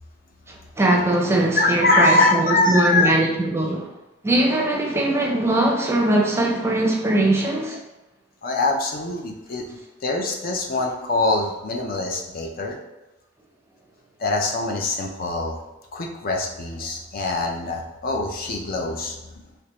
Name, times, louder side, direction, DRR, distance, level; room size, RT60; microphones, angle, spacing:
voice 1, 0.5-3.9 4.2-7.8, right 1 dB, 15° right, -1 dB, 0.5 m, -21 dB
voice 2, 1.6-3.1 8.4-9.6 10.0-12.8 14.2-15.6 15.9-19.2, left 2 dB, 50° left, 1 dB, 0.5 m, -23 dB
3.4 x 2.9 x 3.0 m, 1.0 s
head